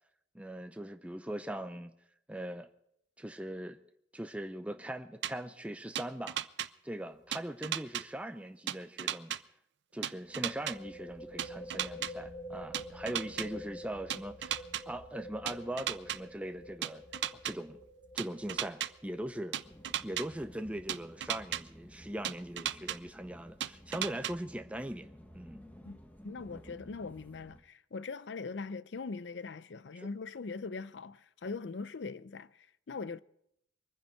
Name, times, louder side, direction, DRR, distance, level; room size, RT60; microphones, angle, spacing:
voice 1, 0.3-1.9 2.3-2.7 3.2-3.8 4.1-6.4 6.8-9.3 9.9-17.0 17.4-17.8 18.1-19.6 20.0-25.1 25.3-25.6 30.0-30.1, right 1 dB, 5° right, 0.6 m, -40 dB
sound 1, 5.2-5.3 5.9-6.7 7.3-8.0 8.7-9.4 10.0-10.7 11.4-12.1 12.7-13.5 14.1-14.8 15.5-16.2 16.8-17.5 18.2-18.9 19.5-20.2 20.9-21.6 22.2-23.0 23.6-24.3, right 11 dB, 70° right, 0.5 m, -34 dB
sound 2, 7.1-7.4 7.6-7.7 10.2-21.6, left 1 dB, 45° left, 3.3 m, -49 dB
sound 3, 19.6-27.6, equal, 10° left, 1.3 m, -54 dB
voice 2, 26.2-33.2, left 4 dB, 75° left, 0.6 m, -41 dB
24.0 x 10.0 x 4.5 m
head